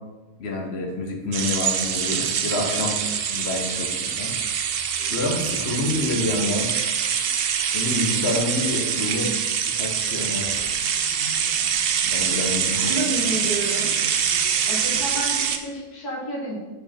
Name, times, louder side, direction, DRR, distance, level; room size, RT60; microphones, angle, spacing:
voice 1, 0.4-3.0 3.3-4.3 5.1-6.7 7.7-9.3 9.7-10.5 12.0-12.9, left 2 dB, 50° left, 1 dB, 1.1 m, -27 dB
sound 1, 1.3-15.6, right 7 dB, 85° right, 0.5 m, -24 dB
voice 2, 12.7-13.9 14.7-16.6, right 1 dB, 80° left, -4 dB, 2.2 m, -30 dB
5.1 x 4.8 x 4.3 m, 1.2 s
omnidirectional pair, 1.6 m